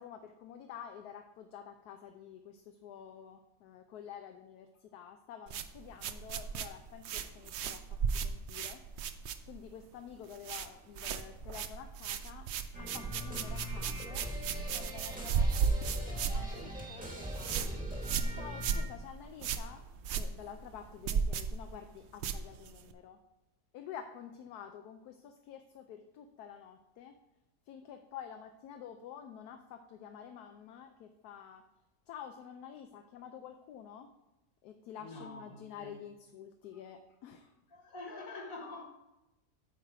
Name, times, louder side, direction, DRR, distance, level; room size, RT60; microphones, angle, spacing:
voice 1, 0.0-8.8 9.5-12.5 12.8-17.7 18.3-19.9 20.1-23.2 23.7-27.2 27.7-31.7 32.1-34.1 34.6-37.5, left 8 dB, 75° left, 6 dB, 1.1 m, -49 dB
sound 1, 5.5-9.8 10.1-10.7 10.9-22.9, right 6 dB, 85° right, 0.6 m, -35 dB
sound 2, 12.7-18.8, equal, 5° right, 1.2 m, -42 dB
voice 2, 35.0-36.0 37.7-38.8, left 2 dB, 55° left, -1 dB, 2.1 m, -46 dB
8.9 x 4.7 x 4.8 m, 0.94 s
omnidirectional pair, 1.7 m